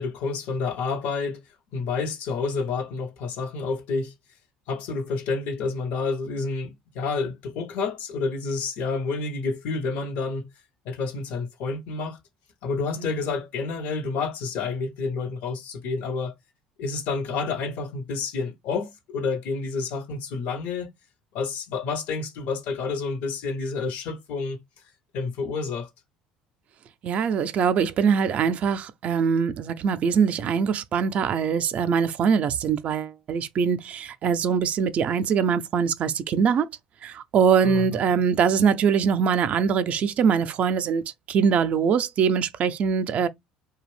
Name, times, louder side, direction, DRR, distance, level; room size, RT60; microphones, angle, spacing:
voice 1, 0.0-1.4 1.7-4.1 4.7-10.5 10.8-12.2 12.6-16.3 16.8-20.9 21.3-24.6 25.1-25.9 37.6-38.2, left 4 dB, 65° left, 0.8 m, -29 dB
voice 2, 27.0-36.7 37.0-43.3, right 6 dB, 50° right, 0.4 m, -23 dB
2.5 x 2.3 x 3.3 m
hypercardioid pair, 65°, 3 cm